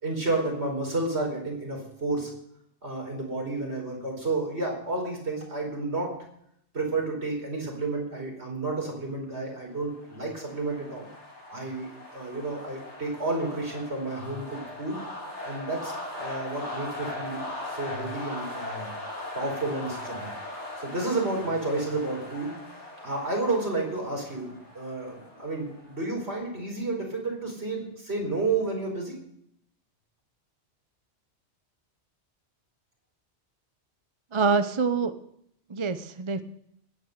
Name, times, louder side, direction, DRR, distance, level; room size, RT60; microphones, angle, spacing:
voice 1, 0.0-2.3 2.8-6.1 6.7-11.1 11.5-11.9 12.1-15.0 15.4-18.9 19.3-20.3 20.8-22.6 23.0-29.2, right 2 dB, 70° right, 1 dB, 4.9 m, -31 dB
sound 1, 9.7-26.4, left 1 dB, 85° left, 3.8 m, -40 dB
voice 2, 34.3-35.1 35.7-36.4, right 4 dB, 30° right, 10 dB, 0.7 m, -25 dB
16.0 x 9.9 x 6.6 m, 0.72 s
omnidirectional pair, 1.2 m